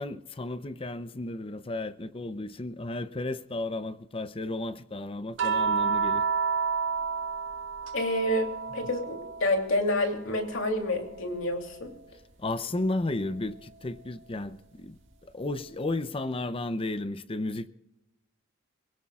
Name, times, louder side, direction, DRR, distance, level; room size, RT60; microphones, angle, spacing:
voice 1, 0.0-6.2 12.4-15.0 15.3-17.7, left 2 dB, 25° left, 0.6 m, -33 dB
sound 1, 5.4-9.9 10.2-11.9 13.4-13.5, right 6 dB, 65° right, 2.3 m, -31 dB
voice 2, 7.9-11.9, left 1 dB, 65° left, 2.9 m, -28 dB
26.5 x 17.0 x 2.4 m
head